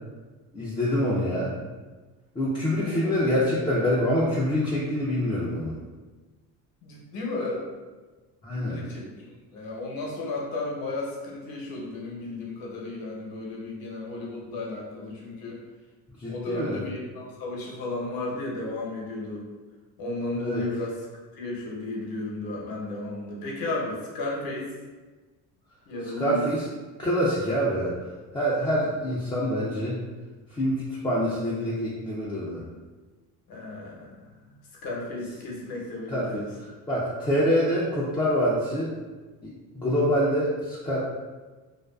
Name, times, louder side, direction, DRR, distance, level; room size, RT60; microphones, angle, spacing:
voice 1, 0.5-1.6 2.4-5.7 8.4-8.8 16.2-16.8 20.4-20.6 26.2-26.7 27.0-27.9 28.3-30.0 30.5-32.6 36.1-36.4 36.9-38.9 39.4-39.5 39.7-41.0, equal, 10° left, -8 dB, 0.3 m, -25 dB
voice 2, 6.8-7.7 8.5-9.3 9.5-15.6 16.3-19.5 20.0-21.0 21.3-24.7 25.9-26.5 33.5-34.5 34.8-36.5, left 2 dB, 60° left, -3 dB, 0.8 m, -34 dB
2.4 x 2.2 x 2.2 m, 1.3 s
cardioid pair, 100°, 39 cm